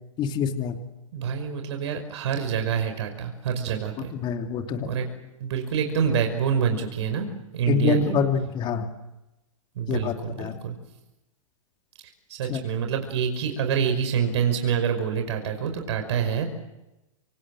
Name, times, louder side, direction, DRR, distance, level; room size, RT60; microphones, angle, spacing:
voice 1, 0.2-0.8 4.1-4.9 7.7-8.9 9.9-10.6 12.5-12.6, left 5 dB, 25° left, 5 dB, 2.8 m, -26 dB
voice 2, 1.1-4.1 4.9-5.1 5.4-7.3 7.5-8.1 9.8-10.8 12.3-16.5, right 7 dB, 55° right, 6 dB, 5.5 m, -26 dB
28.5 x 25.0 x 7.6 m, 0.98 s
hypercardioid pair, 120°, 17 cm